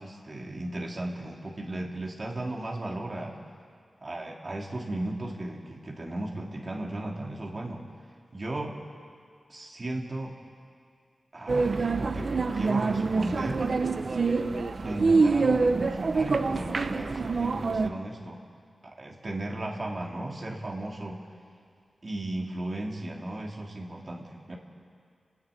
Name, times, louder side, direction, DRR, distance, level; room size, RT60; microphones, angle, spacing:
voice 1, 0.0-3.4 4.0-7.8 8.3-8.8 9.5-10.4 11.3-13.7 14.5-18.4 18.8-21.2 22.0-24.6, right 1 dB, 35° right, -1 dB, 2.6 m, -35 dB
sound 1, 11.5-17.9, right 4 dB, 60° right, 0.8 m, -26 dB
30.0 x 10.5 x 9.1 m, 2.2 s
wide cardioid pair, 125°, 0 cm